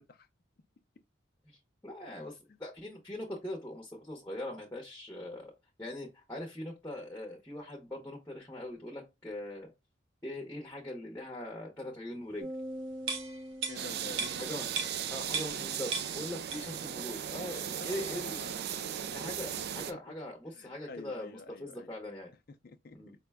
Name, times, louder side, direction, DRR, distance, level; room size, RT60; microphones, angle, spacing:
voice 1, 1.5-5.5 5.8-9.7 10.2-12.5 14.4-14.7 15.1-18.5 19.1-22.3 22.9-23.1, left 1 dB, 10° left, 0.7 m, -41 dB
sound 1, 12.4-14.9, equal, 35° right, 0.7 m, -44 dB
sound 2, 13.0-15.7 15.9-16.9 17.2-17.3, right 4 dB, 75° right, 0.7 m, -37 dB
voice 2, 13.7-14.4 17.8-19.1 20.5-21.9 22.6-23.0, left 3 dB, 50° left, 0.4 m, -48 dB
sound 3, 13.8-19.9, right 9 dB, 55° right, 0.3 m, -37 dB
4.9 x 2.2 x 3.4 m
head